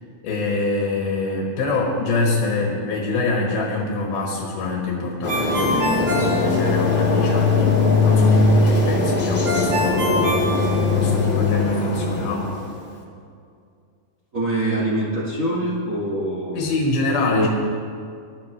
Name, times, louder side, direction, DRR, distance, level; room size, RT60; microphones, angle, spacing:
voice 1, 0.2-10.5 11.0-12.5 16.6-17.5, left 3 dB, 80° left, -1 dB, 3.5 m, -25 dB
sound 1, 5.2-12.8, left 3 dB, 35° left, 0.9 m, -20 dB
Ringtone, 5.3-7.2 9.5-11.3, left 1 dB, 60° right, 4.2 m, -26 dB
voice 2, 14.3-16.7 17.3-17.5, right 1 dB, 35° right, -5 dB, 1.4 m, -24 dB
21.5 x 13.0 x 3.2 m, 2.2 s
omnidirectional pair, 4.3 m